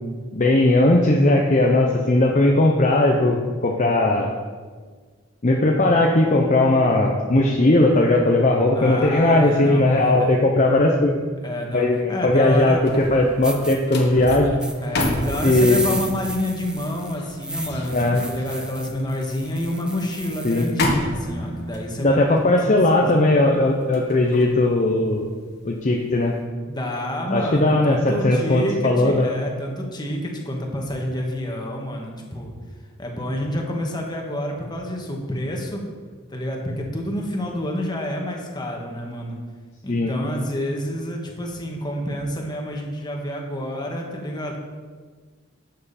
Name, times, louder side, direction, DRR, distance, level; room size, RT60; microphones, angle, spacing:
voice 1, 0.3-4.3 5.4-11.2 11.7-14.5 15.4-15.8 17.9-18.2 20.4-20.7 22.0-25.3 25.6-26.4 27.3-29.3 39.9-40.1, left 2 dB, 40° left, 0 dB, 0.8 m, -18 dB
voice 2, 8.7-10.3 11.4-12.8 14.8-22.3 22.9-23.2 26.7-32.5 33.0-35.8 36.3-39.4 39.8-44.6, equal, 20° left, 0 dB, 1.6 m, -28 dB
sound 1, 12.4-25.7 26.1-26.4, left 1 dB, 55° left, 1.6 m, -31 dB
sound 2, 13.4-13.8 14.6-20.7, right 1 dB, 5° right, 0.8 m, -33 dB
12.5 x 7.6 x 4.3 m, 1.5 s
head